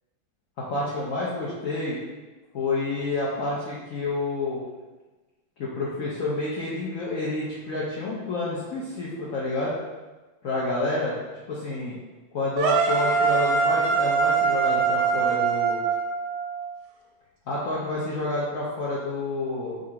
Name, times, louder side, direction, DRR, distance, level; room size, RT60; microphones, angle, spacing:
voice 1, 0.7-2.0 2.5-4.6 5.6-9.8 10.4-11.1 11.5-12.0 12.3-15.8 17.5-19.8, left 2 dB, 70° left, -7 dB, 0.8 m, -29 dB
sound 1, 12.6-16.7, right 5 dB, 90° right, 1.5 m, -23 dB
3.8 x 2.5 x 4.4 m, 1.2 s
omnidirectional pair, 2.2 m